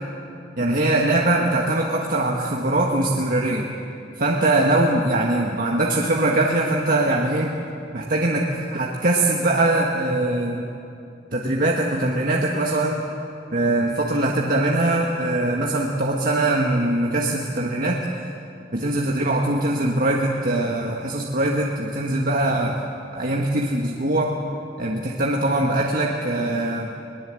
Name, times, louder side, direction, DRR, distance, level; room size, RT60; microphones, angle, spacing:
voice 1, 0.6-3.6 4.2-7.5 7.9-10.6 11.3-13.0 13.5-18.0 18.7-22.8 23.1-24.4 24.8-26.9, right 2 dB, 50° right, -1 dB, 1.6 m, -22 dB
22.0 x 20.0 x 7.7 m, 2.6 s
head